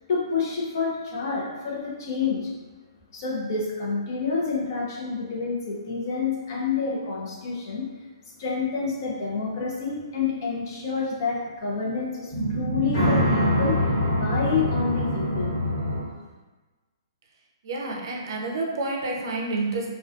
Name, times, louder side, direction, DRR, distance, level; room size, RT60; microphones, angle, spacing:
voice 1, 0.1-2.5 3.1-7.9 8.4-13.8 14.1-15.5, left 5 dB, 45° left, -3 dB, 0.6 m, -28 dB
sound 1, 12.3-16.0, equal, 65° left, 1.2 m, -24 dB
voice 2, 17.6-19.9, right 2 dB, 50° right, -1 dB, 0.5 m, -29 dB
2.3 x 2.2 x 2.5 m, 1.2 s
hypercardioid pair, 165°, 3 cm